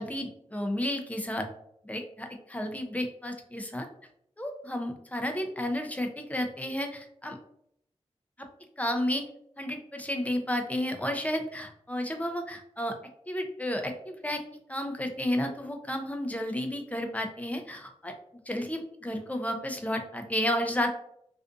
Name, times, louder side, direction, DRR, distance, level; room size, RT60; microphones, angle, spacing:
voice 1, 0.0-1.5 1.8-3.9 4.4-7.4 8.4-8.5 8.8-9.2 9.6-13.0 13.3-14.4 14.7-18.2 18.5-20.9, left 1 dB, 10° left, 4 dB, 0.5 m, -32 dB
2.5 x 2.4 x 2.3 m, 0.72 s
cardioid pair, 55°, 12 cm